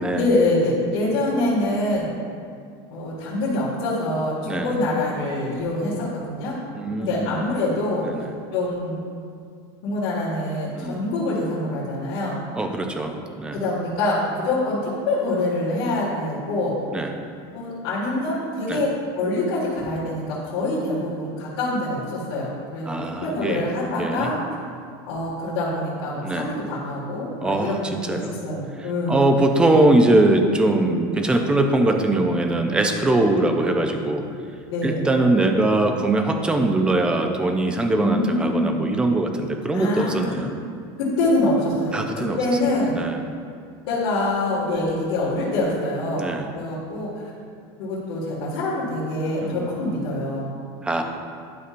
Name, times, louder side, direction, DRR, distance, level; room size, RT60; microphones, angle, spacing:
voice 1, 0.1-2.1 2.9-6.6 7.0-8.2 8.5-9.0 9.8-12.4 13.5-16.7 17.5-24.5 25.1-27.7 28.1-29.3 34.7-35.1 38.0-38.8 39.7-40.3 41.0-43.0 43.9-47.3 47.8-50.5, left 2 dB, 85° left, -9 dB, 1.9 m, -25 dB
voice 2, 6.7-7.3 8.0-8.3 10.7-11.0 12.6-13.6 16.9-17.1 18.7-18.8 22.9-23.7 24.0-24.3 26.2-26.5 27.4-28.3 29.1-34.3 34.8-40.5 41.9-42.4 42.9-43.2 46.1-46.5 49.4-49.7 50.8-51.0, right 2 dB, 5° right, 4 dB, 0.4 m, -21 dB
11.5 x 5.7 x 2.5 m, 2.3 s
cardioid pair, 170°, 13 cm